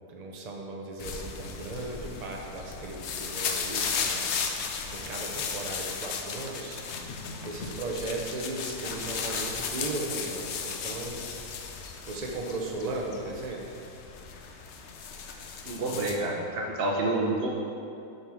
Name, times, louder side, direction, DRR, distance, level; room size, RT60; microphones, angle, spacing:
voice 1, 0.1-4.3 4.9-6.8 7.4-11.2 12.1-13.6, right 2 dB, 75° right, 0 dB, 0.3 m, -36 dB
sound 1, 1.0-16.2, left 5 dB, 75° left, 0.6 m, -35 dB
voice 2, 15.7-17.5, right 2 dB, 50° right, -2 dB, 0.7 m, -28 dB
7.8 x 5.6 x 4.7 m, 2.6 s
omnidirectional pair, 1.9 m